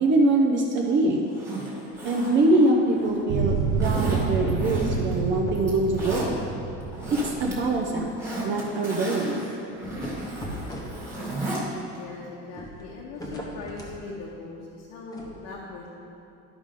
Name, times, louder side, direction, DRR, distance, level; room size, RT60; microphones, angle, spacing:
voice 1, 0.0-1.3 2.0-3.5 3.8-6.4 7.1-8.1 8.4-9.4, right 2 dB, 35° right, 0 dB, 0.6 m, -23 dB
Zipper (clothing), 1.3-3.2 3.8-5.2 5.6-6.3 6.8-7.5 7.9-11.6 12.0-12.1, right 1 dB, 10° right, 1.8 m, -35 dB
sound 1, 1.9-2.5 2.9-4.3 5.0-6.2 7.0-7.7 8.0-8.1 8.6-8.7 9.6-11.4 12.4-14.0 15.1-15.3, equal, 10° left, 0.9 m, -41 dB
sound 2, 3.3-8.2, right 5 dB, 75° right, 0.6 m, -28 dB
voice 2, 12.0-15.9, left 3 dB, 65° left, -4 dB, 1.1 m, -40 dB
12.0 x 5.2 x 3.7 m, 2.7 s
cardioid pair, 160°, 32 cm